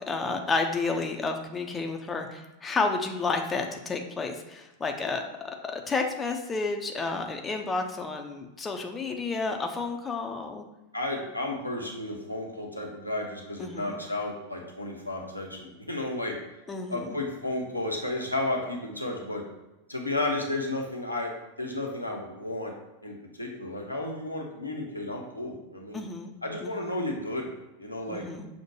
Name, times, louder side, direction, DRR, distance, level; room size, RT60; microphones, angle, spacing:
voice 1, 0.1-10.6 13.6-14.0 16.7-17.1 25.9-26.3 26.6-26.9 28.1-28.5, left 3 dB, 15° left, 4 dB, 0.4 m, -31 dB
voice 2, 10.9-16.4 16.9-19.4 19.9-22.7 23.0-26.0 26.4-27.5 27.8-28.2, left 2 dB, 85° left, 0 dB, 0.7 m, -33 dB
6.1 x 2.1 x 3.0 m, 1.0 s
figure-of-eight pair, 90°, 0 cm